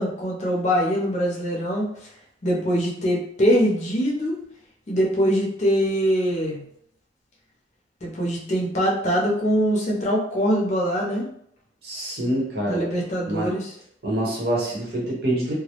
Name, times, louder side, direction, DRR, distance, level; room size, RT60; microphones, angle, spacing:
voice 1, 0.0-1.9 2.4-4.4 4.9-6.6 8.0-11.2 12.7-13.7, equal, 40° left, -3 dB, 0.6 m, -23 dB
voice 2, 11.8-12.8 13.3-13.5 14.0-15.5, right 1 dB, 60° right, -4 dB, 0.8 m, -26 dB
2.2 x 2.0 x 2.8 m, 0.69 s
head